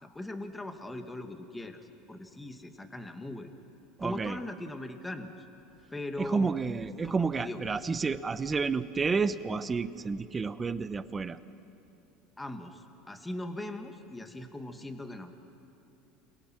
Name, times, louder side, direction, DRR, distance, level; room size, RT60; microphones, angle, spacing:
voice 1, 0.0-1.8 2.1-3.5 4.0-5.4 5.9-6.5 7.0-7.8 12.4-15.3, left 1 dB, 10° left, 6 dB, 1.8 m, -40 dB
voice 2, 4.0-4.4 6.2-11.4, right 4 dB, 20° right, 13 dB, 0.9 m, -30 dB
28.0 x 23.0 x 6.0 m, 2.8 s
supercardioid pair, 100°, 0 cm